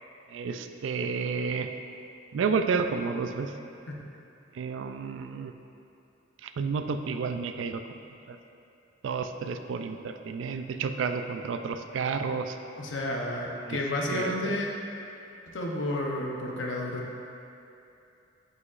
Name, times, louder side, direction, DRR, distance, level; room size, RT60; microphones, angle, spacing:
voice 1, 0.3-1.7 2.3-3.5 4.5-5.5 6.4-7.8 8.3-8.4 9.0-12.6 13.7-13.8 14.1-14.6, right 5 dB, 75° right, 7 dB, 0.3 m, -31 dB
voice 2, 12.8-14.7 15.5-17.1, left 1 dB, 70° left, -1 dB, 0.8 m, -31 dB
8.2 x 5.0 x 2.5 m, 2.8 s
head